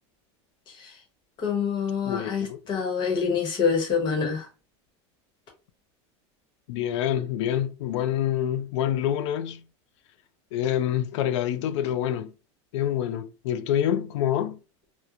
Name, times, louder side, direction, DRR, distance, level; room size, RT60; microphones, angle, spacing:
voice 1, 1.4-4.5, left 6 dB, 30° left, 0.9 m, -26 dB
voice 2, 2.1-2.6 6.7-9.6 10.5-12.3 12.7-14.6, left 10 dB, 75° left, 0.4 m, -26 dB
2.9 x 2.1 x 2.4 m
supercardioid pair, 150°, 15 cm